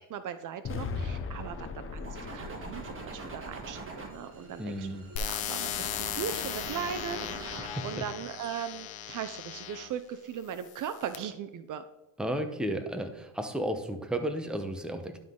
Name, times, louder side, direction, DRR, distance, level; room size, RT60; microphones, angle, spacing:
voice 1, 0.1-1.7 1.9-11.8, right 8 dB, 50° right, 11 dB, 0.5 m, -39 dB
sound 1, 0.6-4.8, left 4 dB, 30° left, 0.7 m, -39 dB
sound 2, 2.0-5.2 5.7-8.0, right 3 dB, 30° right, 1.6 m, -43 dB
voice 2, 4.6-5.1 7.6-7.8 12.2-15.2, right 1 dB, ahead, 6 dB, 0.8 m, -33 dB
sound 3, 5.2-9.9 10.6-11.2, left 9 dB, 80° left, 0.8 m, -37 dB
11.5 x 3.9 x 3.7 m, 0.99 s
cardioid pair, 95°, 41 cm